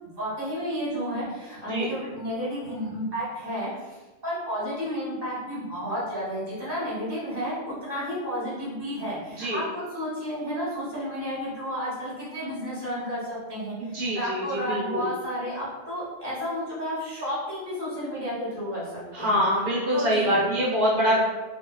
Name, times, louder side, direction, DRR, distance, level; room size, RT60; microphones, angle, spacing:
voice 1, 0.0-19.4 19.9-20.4, equal, 20° right, -8 dB, 1.2 m, -32 dB
voice 2, 13.8-15.0 19.1-21.2, equal, 85° right, -6 dB, 1.4 m, -24 dB
3.2 x 3.1 x 2.3 m, 1.2 s
omnidirectional pair, 1.2 m